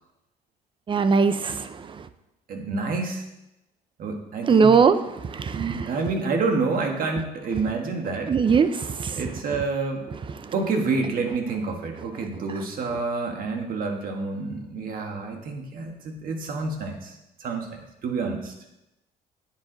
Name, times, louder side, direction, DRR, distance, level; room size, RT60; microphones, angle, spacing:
voice 1, 0.9-2.0 4.5-5.0 5.2-5.9 8.3-9.2 10.4-10.5, right 5 dB, 30° right, 12 dB, 0.5 m, -20 dB
voice 2, 2.5-3.2 4.0-4.8 5.4-8.3 9.1-10.1 10.5-18.5, right 4 dB, 55° right, 3 dB, 1.6 m, -28 dB
9.6 x 7.4 x 3.9 m, 0.94 s
cardioid pair, 110°, 17 cm